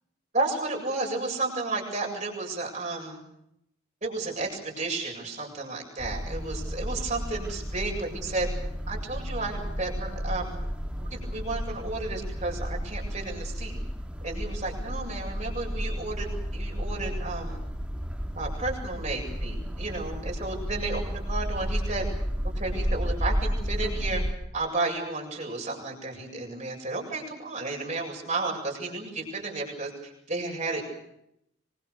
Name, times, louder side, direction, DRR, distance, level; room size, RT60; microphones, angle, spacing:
voice 1, 0.3-3.2 4.0-8.5 8.9-10.6 11.0-13.8 14.2-16.3 16.5-17.6 18.3-22.1 22.5-24.2 24.5-30.8, right 3 dB, 35° right, 0 dB, 7.7 m, -32 dB
sound 1, 6.0-24.3, equal, 5° right, 2.7 m, -32 dB
26.0 x 25.0 x 6.9 m, 0.78 s
head